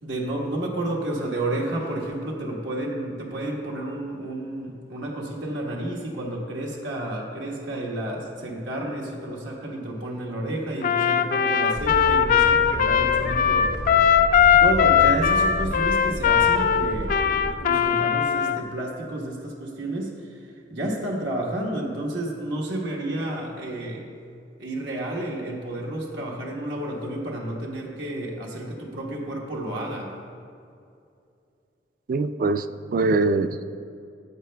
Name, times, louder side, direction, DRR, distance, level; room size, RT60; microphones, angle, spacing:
voice 1, 0.0-14.3 14.6-17.2 17.6-24.1 24.6-30.1, right 1 dB, 85° right, -2 dB, 1.3 m, -31 dB
Trumpet, 10.8-18.6, left 8 dB, 50° left, 0.3 m, -20 dB
sound 1, 11.7-17.6, equal, 70° right, 1.1 m, -32 dB
voice 2, 32.1-32.7 32.9-33.7, right 3 dB, 50° right, 11 dB, 0.3 m, -22 dB
14.0 x 8.6 x 2.2 m, 2.5 s
head